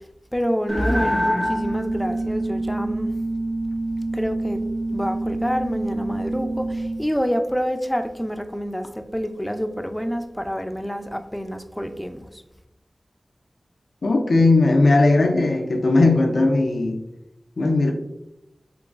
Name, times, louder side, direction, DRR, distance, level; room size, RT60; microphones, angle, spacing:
voice 1, 0.3-3.1 4.1-4.6 4.9-12.4, equal, 5° left, 7 dB, 0.3 m, -27 dB
sound 1, 0.7-7.0, right 1 dB, 85° right, 1.0 m, -26 dB
voice 2, 14.0-17.0 17.6-17.9, left 2 dB, 90° left, 4 dB, 0.4 m, -18 dB
3.7 x 3.0 x 2.4 m, 0.87 s
wide cardioid pair, 60°, 0 cm